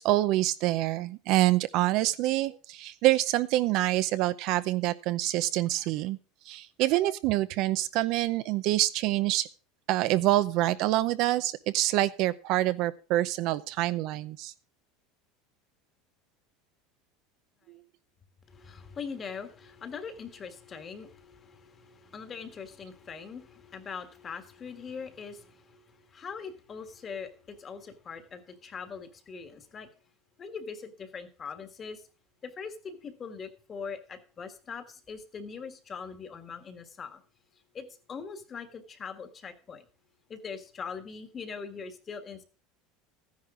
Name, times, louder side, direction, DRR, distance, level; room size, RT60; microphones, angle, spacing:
voice 1, 0.0-6.2 6.5-9.5 9.9-14.5, right 16 dB, 45° right, 13 dB, 0.6 m, -26 dB
voice 2, 18.5-29.9 30.4-32.0 32.4-37.2 37.7-39.8 40.3-42.4, left 5 dB, 20° left, 8 dB, 1.6 m, -42 dB
14.0 x 10.5 x 3.7 m, 0.35 s
cardioid pair, 165°, 0 cm